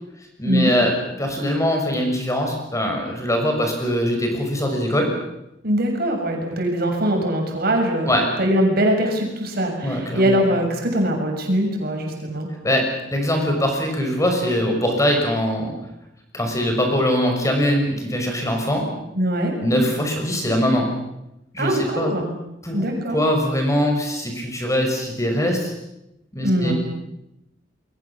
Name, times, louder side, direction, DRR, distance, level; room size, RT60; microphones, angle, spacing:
voice 1, 0.4-5.1 8.0-8.3 9.8-10.4 12.6-15.7 16.3-18.9 19.6-20.9 21.5-22.1 22.6-22.8 23.1-25.7 26.3-26.7, equal, 15° left, 3 dB, 6.2 m, -22 dB
voice 2, 5.6-12.5 19.1-19.5 21.6-22.3 22.7-23.2 26.4-26.7, equal, 55° right, 2 dB, 6.9 m, -22 dB
29.0 x 22.5 x 7.4 m, 0.88 s
head